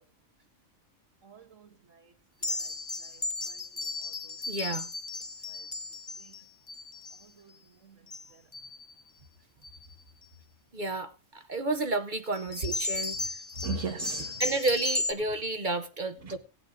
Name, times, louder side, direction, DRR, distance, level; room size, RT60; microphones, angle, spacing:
voice 1, 1.2-1.7 2.4-2.5 3.5-3.6 6.2-6.3 7.2-7.5 7.8-8.0 13.6-14.4, right 3 dB, 65° right, 1.6 m, -37 dB
sound 1, 2.4-7.2 8.1-8.3 8.5-8.9 9.6-9.9 12.4-15.1, left 2 dB, 25° left, 0.8 m, -35 dB
voice 2, 4.5-4.9 10.7-13.2 14.4-16.4, right 2 dB, 40° right, 0.9 m, -31 dB
17.0 x 8.1 x 3.7 m
omnidirectional pair, 1.4 m